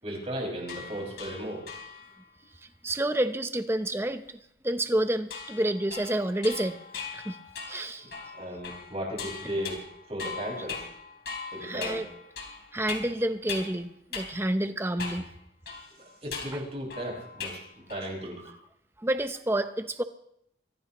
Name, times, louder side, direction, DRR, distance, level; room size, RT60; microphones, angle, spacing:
voice 1, 0.0-1.6 8.3-9.8 10.1-10.8 11.5-12.2 16.0-17.6 17.9-18.6, equal, 35° right, -1 dB, 5.9 m, -35 dB
sound 1, 0.6-2.2 5.3-13.8 14.1-14.3 15.0-15.3 15.7-17.6 17.9-18.3, left 5 dB, 60° left, 3.6 m, -40 dB
voice 2, 2.8-4.4 4.6-6.8 7.1-7.4 7.7-8.1 11.6-12.1 12.7-15.3 19.0-20.0, right 1 dB, 15° right, 9 dB, 0.7 m, -29 dB
23.5 x 16.5 x 3.1 m, 0.74 s
head